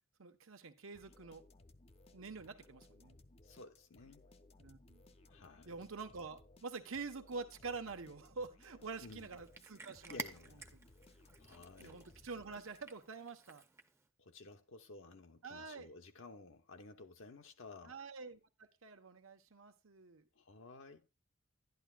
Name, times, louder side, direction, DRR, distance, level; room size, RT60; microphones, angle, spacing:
voice 1, 0.2-1.4 2.1-3.2 4.6-5.0 5.7-10.2 11.8-13.6 15.4-15.9 17.9-20.3, right 4 dB, 90° right, 1.1 m, -47 dB
sound 1, 0.9-13.1, left 2 dB, 30° left, 0.6 m, -63 dB
voice 2, 3.4-4.2 5.3-5.8 9.0-9.3 10.1-10.7 11.4-12.0 14.2-18.0 20.3-21.1, left 3 dB, 70° left, 0.8 m, -54 dB
Cat, 8.9-14.1, right 2 dB, 15° right, 0.6 m, -52 dB
11.5 x 10.5 x 2.4 m
head